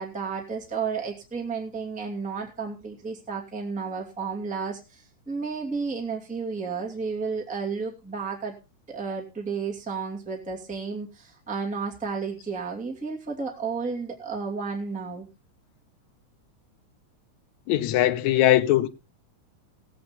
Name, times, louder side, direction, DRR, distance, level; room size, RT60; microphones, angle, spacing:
voice 1, 0.0-8.5 8.9-15.3, right 5 dB, 5° right, 1.9 m, -32 dB
voice 2, 17.7-18.9, left 14 dB, 70° left, 1.9 m, -20 dB
18.0 x 8.0 x 4.2 m
omnidirectional pair, 3.8 m